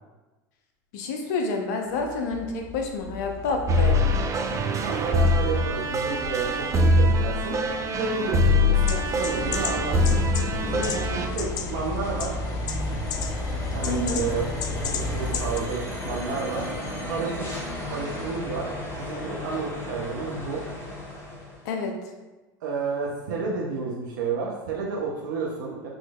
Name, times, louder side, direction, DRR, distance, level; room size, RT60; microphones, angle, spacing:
voice 1, 0.9-4.1 13.9-14.2 21.6-22.0, left 3 dB, 65° left, 3 dB, 0.7 m, -28 dB
sound 1, 1.9-21.7, left 1 dB, 25° left, 1.3 m, -36 dB
sound 2, 3.7-11.3, left 1 dB, 30° right, 0.5 m, -23 dB
voice 2, 4.8-7.6 7.9-10.2 10.6-12.4 13.7-14.4 14.8-16.6 17.1-17.5 17.9-18.7 19.0-20.6 22.6-25.9, right 4 dB, 70° right, -3 dB, 0.8 m, -31 dB
sound 3, 8.8-15.6, left 4 dB, 40° left, 0.4 m, -31 dB
6.3 x 3.1 x 2.3 m, 1.1 s
hypercardioid pair, 75°, 10 cm